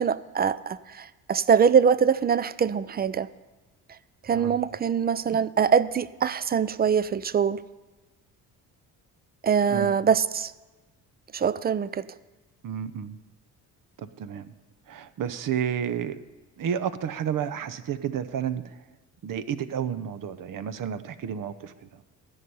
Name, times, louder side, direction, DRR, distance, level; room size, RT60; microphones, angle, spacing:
voice 1, 0.0-3.3 4.2-7.6 9.4-10.5 11.3-12.1, right 7 dB, 25° right, 18 dB, 0.5 m, -23 dB
voice 2, 12.6-13.2 14.0-14.5 14.9-16.2 16.6-18.7 19.2-21.7, right 8 dB, 55° right, 13 dB, 0.8 m, -31 dB
13.5 x 5.5 x 9.5 m, 1.2 s
supercardioid pair, 70°, 40 cm